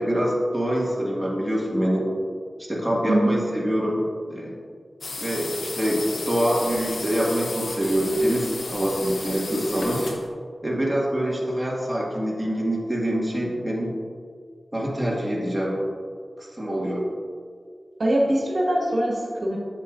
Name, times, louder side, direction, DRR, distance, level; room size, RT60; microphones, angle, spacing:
voice 1, 0.0-2.0 2.7-4.5 5.2-10.1 10.6-13.9 14.7-15.8 16.4-17.1, equal, 5° right, -5 dB, 1.7 m, -25 dB
voice 2, 3.1-3.4 18.0-19.6, right 1 dB, 60° right, -3 dB, 1.3 m, -22 dB
sound 1, 5.0-10.3, left 3 dB, 85° left, 0.8 m, -34 dB
8.1 x 7.6 x 2.6 m, 2.1 s
wide cardioid pair, 80°, 0 cm